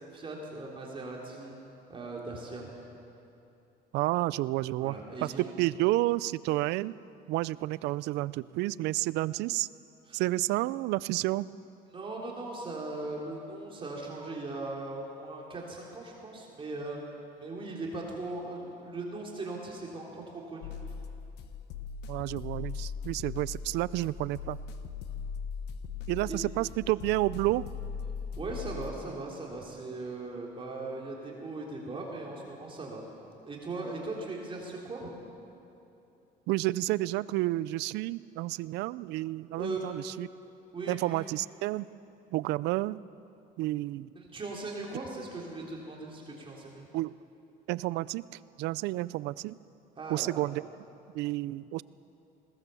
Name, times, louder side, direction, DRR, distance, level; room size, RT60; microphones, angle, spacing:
voice 1, 0.1-1.5 1.9-2.7 4.8-5.5 10.1-10.2 11.9-17.0 17.4-20.7 26.3-26.4 28.4-33.0 33.5-35.1 39.6-39.8 40.7-41.0 44.2-46.8 50.0-50.3, right 2 dB, 30° right, -2 dB, 3.5 m, -39 dB
voice 2, 3.9-6.9 7.3-9.7 10.1-11.5 22.1-24.6 26.1-27.7 36.5-40.3 40.9-41.9 42.3-43.0 43.6-44.1 46.9-47.1 47.7-48.3 48.6-49.6 50.1-50.6 51.1-51.8, right 18 dB, 90° right, 19 dB, 0.4 m, -30 dB
sound 1, 20.6-28.9, left 6 dB, 80° left, 1.1 m, -39 dB
20.5 x 18.0 x 7.0 m, 2.9 s
cardioid pair, 110°, 17 cm